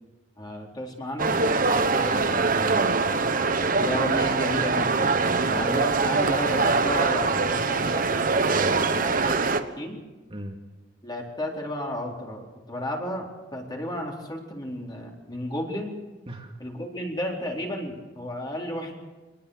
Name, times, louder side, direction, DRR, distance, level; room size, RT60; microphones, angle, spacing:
voice 1, 0.4-1.4 3.8-5.2 5.4-8.2 8.9-10.0 11.0-16.0 16.6-19.0, equal, 25° left, -1 dB, 4.0 m, -33 dB
sound 1, 1.2-9.6, right 4 dB, 50° right, 1.2 m, -23 dB
voice 2, 1.6-3.1 8.5-8.9 10.3-10.6 16.3-16.5, right 1 dB, 30° right, 0 dB, 2.7 m, -33 dB
24.5 x 20.0 x 6.6 m, 1.1 s
head